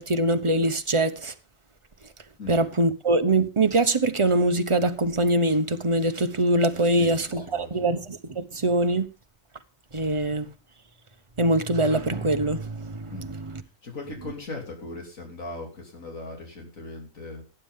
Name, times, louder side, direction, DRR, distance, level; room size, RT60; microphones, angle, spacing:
voice 1, 0.0-1.3 2.5-9.1 9.9-10.5 11.4-13.6, right 2 dB, 25° right, 1.0 m, -23 dB
voice 2, 7.0-7.9 13.1-13.3 13.8-17.4, left 2 dB, 90° left, 3.6 m, -39 dB
18.0 x 9.6 x 3.7 m
omnidirectional pair, 1.4 m